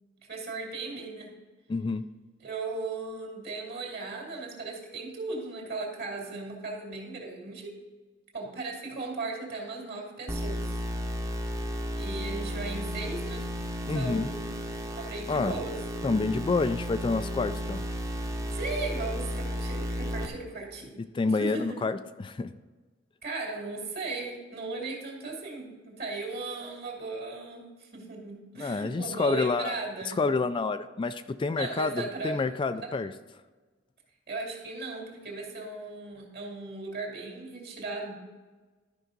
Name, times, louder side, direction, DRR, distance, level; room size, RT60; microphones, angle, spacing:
voice 1, 0.3-1.3 2.4-7.7 8.3-10.7 11.9-13.4 13.8-14.6 15.0-15.8 18.5-21.0 21.3-21.8 23.2-30.2 31.5-32.5 32.7-32.9 34.3-38.2, right 3 dB, 55° right, -1 dB, 2.5 m, -37 dB
voice 2, 1.7-2.1 13.9-14.3 15.3-15.6 16.0-17.8 21.1-22.5 28.6-29.8 30.1-33.1, left 3 dB, 25° left, 11 dB, 0.3 m, -28 dB
sound 1, 10.3-20.3, equal, 15° right, 0.8 m, -33 dB
13.0 x 5.5 x 3.9 m, 1.3 s
head